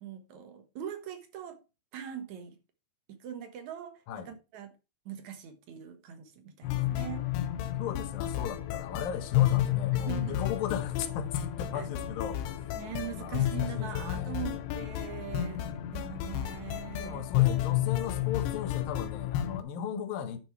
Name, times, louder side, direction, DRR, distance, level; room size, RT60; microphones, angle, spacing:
voice 1, 0.0-1.6 1.9-2.6 3.1-4.7 5.1-7.2 9.9-10.4 11.7-11.9 12.8-15.6 15.9-17.3 19.9-20.0, right 9 dB, 60° right, 2.1 m, -41 dB
sound 1, 6.6-19.6, left 12 dB, 85° left, 3.1 m, -31 dB
voice 2, 7.1-7.5 7.8-12.6 13.1-14.6 16.7-20.4, left 8 dB, 70° left, 2.7 m, -37 dB
11.0 x 5.3 x 4.4 m
omnidirectional pair, 4.7 m